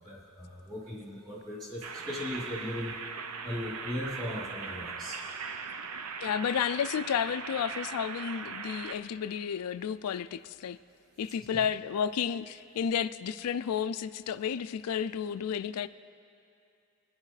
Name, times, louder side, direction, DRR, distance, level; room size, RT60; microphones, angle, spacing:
voice 1, 0.0-3.0 3.4-5.2 11.2-11.7, left 1 dB, 20° right, -6 dB, 3.5 m, -38 dB
sound 1, 1.8-8.9, right 5 dB, 85° right, 0.7 m, -39 dB
voice 2, 6.2-10.8 11.2-15.9, left 8 dB, 90° left, 12 dB, 0.4 m, -32 dB
28.0 x 10.5 x 3.3 m, 2.6 s
head